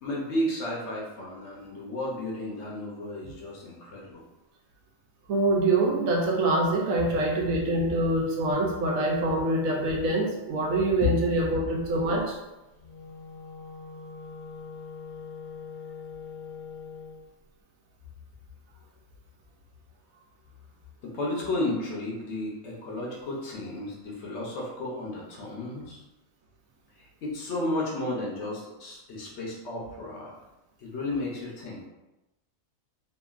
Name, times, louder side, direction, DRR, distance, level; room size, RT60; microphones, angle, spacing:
voice 1, 0.0-4.2 11.0-11.1 21.0-26.0 27.0-30.3 30.8-31.8, left 2 dB, 65° left, -3 dB, 0.8 m, -33 dB
voice 2, 5.3-12.4, right 2 dB, 80° right, 0 dB, 1.0 m, -25 dB
Wind instrument woodwind instrument, 12.7-17.2, left 5 dB, 85° left, 1.2 m, -42 dB
2.9 x 2.5 x 2.3 m, 0.99 s
omnidirectional pair, 1.5 m